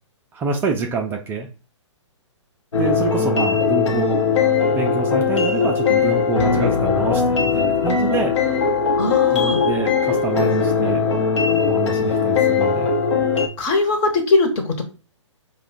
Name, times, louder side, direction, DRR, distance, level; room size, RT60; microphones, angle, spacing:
voice 1, 0.3-1.5 2.8-4.2 4.6-8.3 9.3-11.0 11.5-12.9, right 4 dB, 15° right, 1 dB, 0.4 m, -26 dB
sound 1, 2.7-13.5, left 5 dB, 65° left, 0.9 m, -19 dB
voice 2, 9.0-9.6 13.6-14.8, left 3 dB, 30° left, 3 dB, 1.0 m, -20 dB
4.8 x 2.3 x 3.8 m, 0.35 s
figure-of-eight pair, 125°, 16 cm